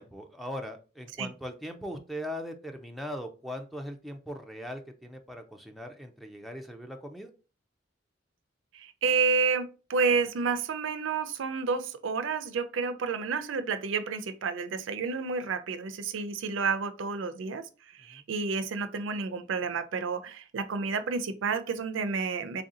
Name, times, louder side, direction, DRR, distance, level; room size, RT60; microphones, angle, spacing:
voice 1, 0.0-7.3 18.1-18.2, equal, ahead, 0.3 m, -40 dB
voice 2, 8.7-22.6, right 5 dB, 65° right, 0.4 m, -30 dB
3.3 x 2.7 x 3.7 m
head